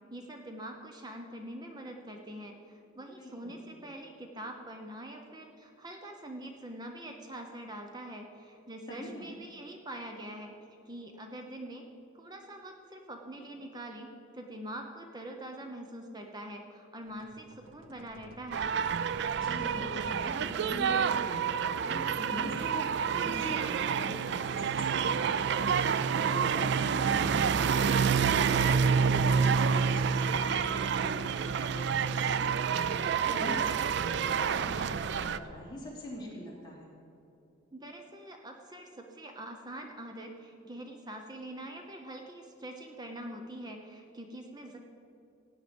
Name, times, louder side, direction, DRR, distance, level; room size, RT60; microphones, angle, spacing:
voice 1, 0.1-10.5 10.9-11.9 12.1-18.7 37.7-44.8, right 1 dB, 20° right, 3 dB, 0.8 m, -44 dB
voice 2, 3.1-3.6 8.9-9.3 19.3-36.9, left 1 dB, 20° left, -5 dB, 3.0 m, -43 dB
sound 1, 17.0-21.9, right 2 dB, 80° right, 0.7 m, -51 dB
sound 2, 18.5-35.4, right 6 dB, 55° right, 0.3 m, -28 dB
16.5 x 9.0 x 5.2 m, 2.7 s
head